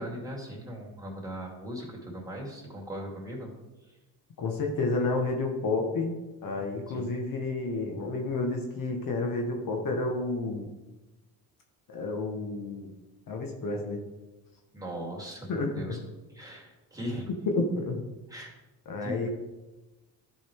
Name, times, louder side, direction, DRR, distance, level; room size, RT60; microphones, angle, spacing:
voice 1, 0.0-3.5 6.9-7.1 14.7-16.0 16.3-17.3 18.3-18.5 19.0-19.3, equal, 10° right, -3 dB, 3.0 m, -39 dB
voice 2, 4.4-6.1 6.4-10.7 11.9-12.9 13.3-14.0 15.5-16.0 17.5-18.0 18.9-19.3, left 3 dB, 55° left, 2 dB, 1.4 m, -30 dB
11.5 x 5.2 x 3.6 m, 1.1 s
cardioid pair, 90°, 40 cm